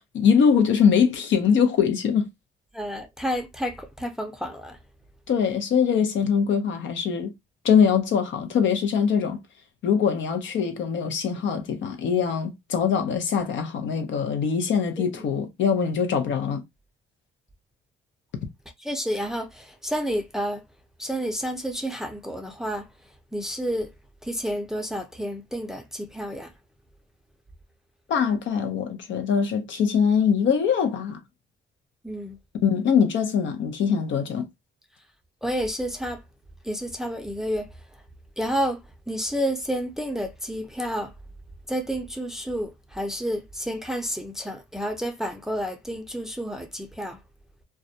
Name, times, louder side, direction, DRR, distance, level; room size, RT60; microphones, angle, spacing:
voice 1, 0.0-2.3 5.3-7.3 7.6-9.4 9.8-16.6 28.1-31.2 32.6-34.5, left 7 dB, 70° left, 0.6 m, -22 dB
voice 2, 2.7-4.8 15.0-15.1 18.8-20.6 21.0-22.9 23.3-23.9 24.2-26.5 32.0-32.4 35.4-36.2 36.6-37.7 38.4-38.8 39.1-41.1 41.7-47.2, equal, ahead, 0.5 m, -30 dB
2.3 x 2.1 x 2.6 m
cardioid pair, 90°, 20 cm